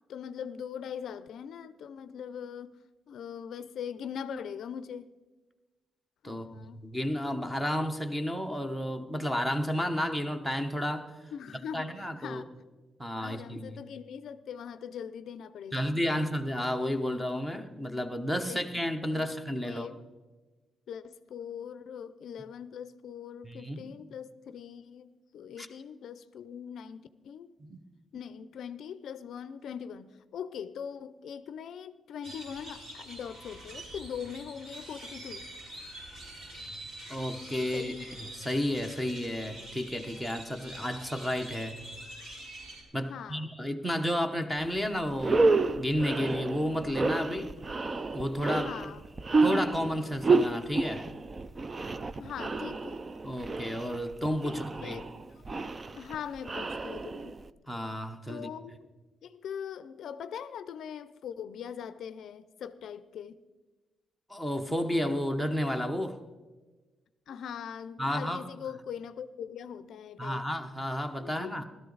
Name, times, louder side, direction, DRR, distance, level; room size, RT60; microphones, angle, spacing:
voice 1, 0.1-5.1 6.2-6.8 11.3-12.5 13.2-16.2 17.7-17.9 18.5-18.6 19.1-19.3 19.6-20.1 20.9-27.5 28.1-35.5 37.7-38.0 43.1-43.5 48.5-49.0 52.2-53.0 54.4-57.4 58.3-58.9 59.2-63.4 67.3-70.5 71.2-71.5, left 8 dB, 60° left, 0.5 m, -41 dB
voice 2, 6.2-11.1 11.7-12.4 13.0-13.7 15.7-19.9 23.4-23.9 25.6-25.7 27.6-27.8 37.1-41.8 42.9-47.6 48.1-48.7 49.4-51.1 53.2-55.0 57.7-58.5 64.3-66.2 68.0-68.4 70.2-71.6, equal, 5° right, 0.8 m, -32 dB
sound 1, 32.2-42.8, right 1 dB, 55° right, 4.5 m, -45 dB
sound 2, 44.6-44.8 45.1-57.5, right 3 dB, 25° right, 0.4 m, -30 dB
16.5 x 13.0 x 3.9 m
cardioid pair, 165°, 0 cm